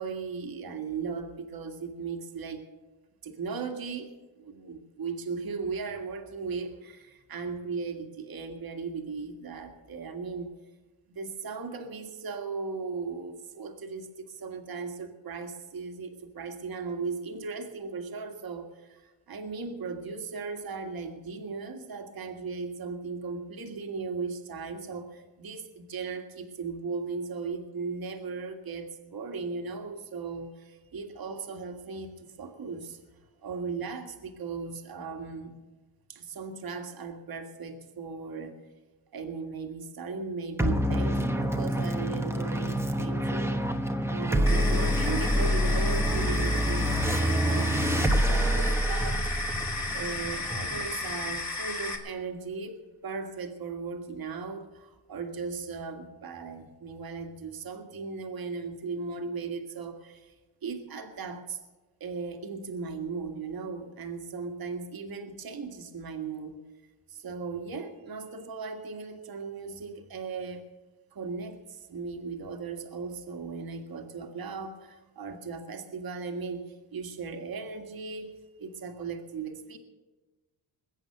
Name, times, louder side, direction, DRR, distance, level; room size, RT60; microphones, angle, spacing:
voice 1, 0.0-2.6 3.2-10.5 11.2-35.6 36.1-38.6 39.1-46.9 47.2-49.5 49.9-52.8 53.0-60.3 60.6-61.6 62.0-66.6 67.1-70.7 71.1-79.8, right 4 dB, 50° right, 5 dB, 1.8 m, -37 dB
sound 1, 40.6-51.4, equal, 5° right, 1.1 m, -27 dB
sound 2, 44.5-52.0, left 3 dB, 35° left, 2.7 m, -34 dB
21.5 x 8.2 x 6.6 m, 1.2 s
cardioid pair, 100°, 47 cm